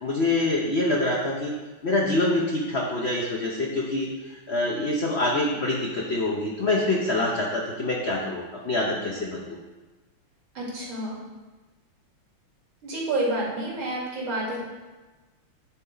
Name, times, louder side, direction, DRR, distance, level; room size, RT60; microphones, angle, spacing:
voice 1, 0.0-1.5 1.8-4.1 4.5-9.6, left 2 dB, 60° left, -2 dB, 0.6 m, -25 dB
voice 2, 10.5-11.2 12.8-14.6, right 1 dB, 80° right, -5 dB, 3.0 m, -29 dB
10.0 x 4.1 x 3.9 m, 1.2 s
omnidirectional pair, 2.2 m